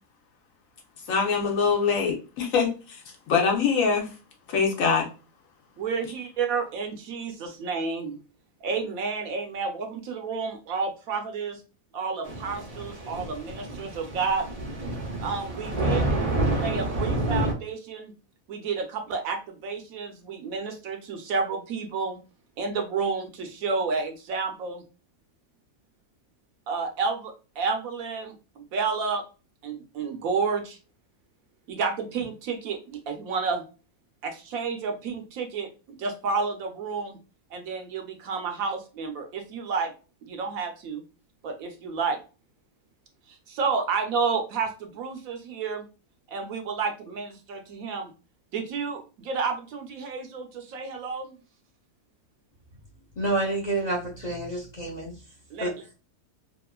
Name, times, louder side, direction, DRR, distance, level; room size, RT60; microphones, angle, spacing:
voice 1, 1.1-3.0 3.3-4.1 4.5-5.1, left 5 dB, 65° left, 1 dB, 1.0 m, -23 dB
voice 2, 5.8-8.2 8.6-11.6 11.9-14.5 15.2-16.0 16.5-18.1 18.5-22.2 22.6-24.8 26.7-29.2 29.6-30.8 31.7-33.7 34.2-35.7 36.0-37.2 37.5-39.9 40.2-41.0 41.4-42.2 43.3-45.9 46.3-48.1 48.5-51.3 55.5-55.7, right 5 dB, 70° right, 4 dB, 1.0 m, -30 dB
Thunder / Rain, 12.3-17.5, right 1 dB, 40° right, 0.5 m, -28 dB
voice 3, 53.2-55.1 55.6-55.7, right 2 dB, 40° left, -4 dB, 0.6 m, -28 dB
2.9 x 2.4 x 2.2 m, 0.33 s
omnidirectional pair, 1.6 m